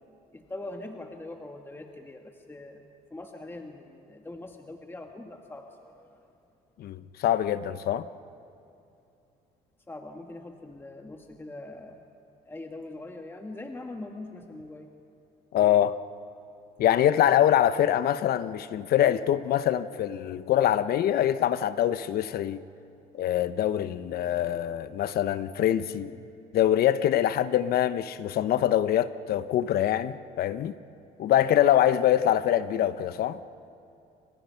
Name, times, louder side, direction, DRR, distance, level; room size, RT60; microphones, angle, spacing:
voice 1, 0.3-2.8 3.1-6.3 9.9-12.0 12.5-14.9, left 2 dB, 15° left, 4 dB, 1.4 m, -42 dB
voice 2, 6.8-8.1 15.5-16.0 16.8-22.6 23.1-26.2 26.5-30.7 31.2-33.4, left 11 dB, 65° left, 13 dB, 0.9 m, -24 dB
29.0 x 25.5 x 5.8 m, 2.7 s
cardioid pair, 110°, 17 cm